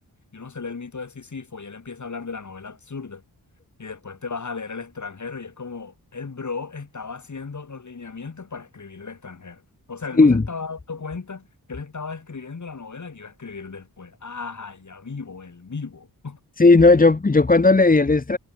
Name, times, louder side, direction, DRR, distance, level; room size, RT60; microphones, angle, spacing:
voice 1, 0.3-3.2 3.8-9.6 9.9-16.4, left 4 dB, 50° left, 6.0 m, -36 dB
voice 2, 16.6-18.4, left 3 dB, 20° left, 1.0 m, -15 dB
wide cardioid pair, 135°, 38 cm